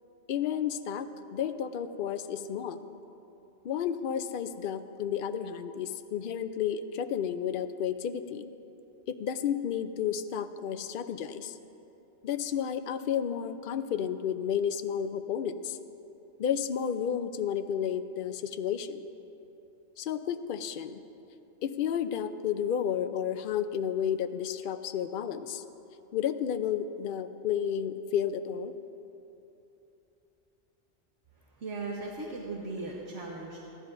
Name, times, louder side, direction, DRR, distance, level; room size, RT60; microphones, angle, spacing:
voice 1, 0.3-2.9 3.6-8.5 9.1-11.6 12.2-15.8 16.4-19.0 20.0-21.0 21.6-25.6 26.1-28.7, left 8 dB, 55° left, 10 dB, 0.6 m, -32 dB
voice 2, 31.6-33.6, right 3 dB, 90° right, -3 dB, 1.6 m, -37 dB
28.5 x 11.0 x 2.6 m, 2.9 s
omnidirectional pair, 1.2 m